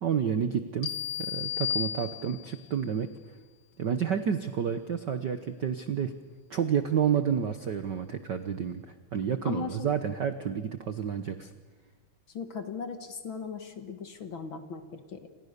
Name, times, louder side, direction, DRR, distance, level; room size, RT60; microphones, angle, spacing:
voice 1, 0.0-3.1 3.8-6.1 6.5-11.5, right 8 dB, 85° right, 9 dB, 0.9 m, -30 dB
sound 1, 0.8-2.6, left 9 dB, 80° left, 4.2 m, -33 dB
voice 2, 9.4-9.9 12.3-15.3, left 5 dB, 45° left, 8 dB, 2.0 m, -38 dB
29.0 x 27.0 x 6.8 m, 1.3 s
omnidirectional pair, 3.6 m